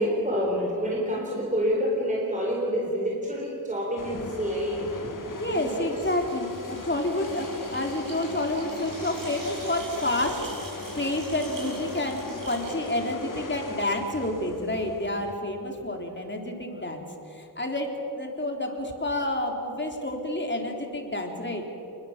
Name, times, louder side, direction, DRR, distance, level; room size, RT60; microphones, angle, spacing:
voice 1, 0.0-5.0 5.4-6.0, equal, 20° right, -3 dB, 4.3 m, -28 dB
sound 1, 4.0-15.3, left 3 dB, 55° left, 2.0 m, -39 dB
voice 2, 5.0-10.4 11.0-17.9 18.2-21.6, left 1 dB, 30° left, 2 dB, 3.7 m, -29 dB
sound 2, 5.5-13.9, right 2 dB, 55° right, 7.5 m, -45 dB
27.0 x 22.0 x 7.5 m, 3.0 s
wide cardioid pair, 90°, 39 cm